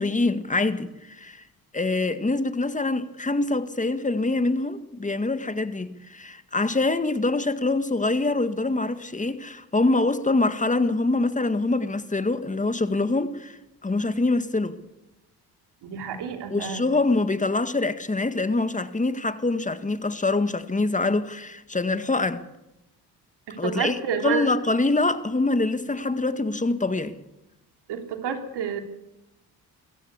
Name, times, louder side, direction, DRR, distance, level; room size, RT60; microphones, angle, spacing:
voice 1, 0.0-1.4 1.7-14.8 16.5-22.4 23.6-24.0 24.2-27.2, left 2 dB, 20° left, 1.8 m, -25 dB
voice 2, 15.8-16.8 23.5-24.5 27.9-28.8, right 7 dB, 75° right, 3.3 m, -29 dB
23.5 x 15.0 x 8.2 m
supercardioid pair, 70°, 41 cm